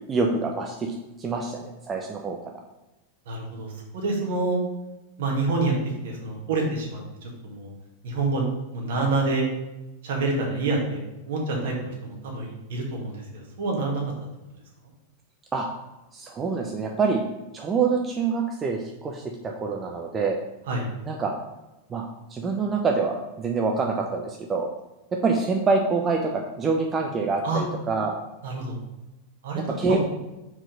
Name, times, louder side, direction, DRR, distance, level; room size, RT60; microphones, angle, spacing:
voice 1, 0.0-2.4 15.5-15.7 16.1-17.2 17.5-19.2 19.6-20.4 21.1-21.3 21.9-24.7 25.2-28.2 29.8-30.0, right 4 dB, 20° right, 1 dB, 0.7 m, -26 dB
voice 2, 3.3-4.6 5.2-5.7 6.0-7.7 8.0-8.5 8.7-9.5 10.0-11.0 11.3-14.0 20.7-20.8 27.4-27.6 28.4-28.8 29.4-30.0, right 3 dB, 55° right, -1 dB, 1.9 m, -27 dB
5.8 x 4.9 x 5.1 m, 1.0 s
figure-of-eight pair, 90°, 0 cm